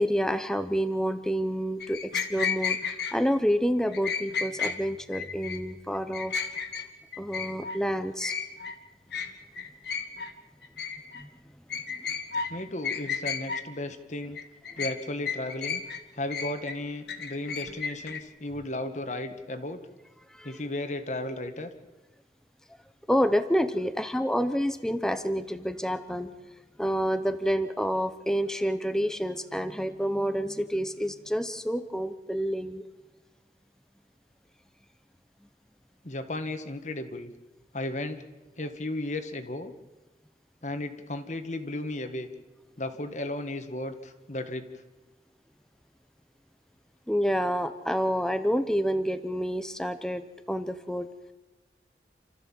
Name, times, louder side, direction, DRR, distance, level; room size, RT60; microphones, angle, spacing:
voice 1, 0.0-6.3 7.2-8.3 11.1-11.3 20.3-20.6 23.1-26.3 26.8-32.8 47.1-51.1, equal, 5° left, 10 dB, 0.7 m, -28 dB
sound 1, 1.8-3.2 3.9-4.8 5.1-5.6 5.9-6.9 7.1-7.8 8.2-8.7 9.1-9.3 9.6-10.3 10.6-11.2 11.7-12.5 12.8-13.6 14.2-15.0 15.3-16.0 16.3-18.2, left 6 dB, 65° left, 1.6 m, -32 dB
voice 2, 12.5-14.4 14.8-15.8 16.1-19.8 20.4-21.7 36.0-37.3 37.7-38.2 38.6-39.7 40.6-42.3 42.8-44.7, left 1 dB, 40° left, 8 dB, 1.5 m, -34 dB
28.5 x 13.5 x 7.4 m, 1.2 s
head